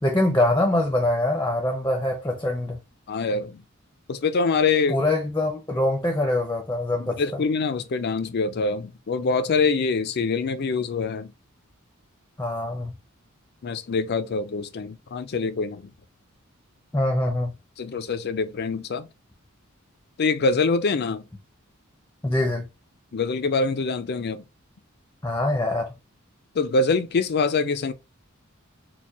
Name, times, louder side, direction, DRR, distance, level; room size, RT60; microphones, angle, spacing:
voice 1, 0.0-2.8 4.9-7.4 12.4-12.9 16.9-17.6 22.2-22.7 25.2-25.9, left 1 dB, 10° left, 0.6 m, -24 dB
voice 2, 3.1-3.6 4.1-5.0 7.0-11.3 13.6-15.9 17.8-19.1 20.2-21.2 23.1-24.4 26.5-27.9, left 4 dB, 50° left, 0.5 m, -24 dB
4.4 x 2.3 x 2.9 m
head